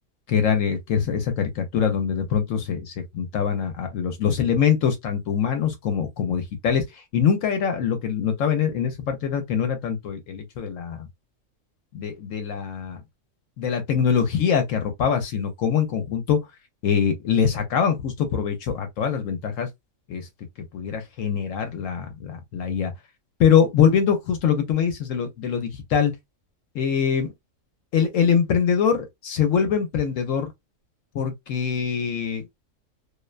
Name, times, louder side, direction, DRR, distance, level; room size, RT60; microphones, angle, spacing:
voice 1, 0.3-11.1 11.9-13.0 13.6-16.4 16.8-19.7 20.1-20.3 20.7-22.9 23.4-26.1 26.7-27.3 27.9-30.5 31.1-32.5, left 7 dB, 75° left, 1.0 m, -23 dB
2.6 x 2.1 x 2.3 m
omnidirectional pair, 1.4 m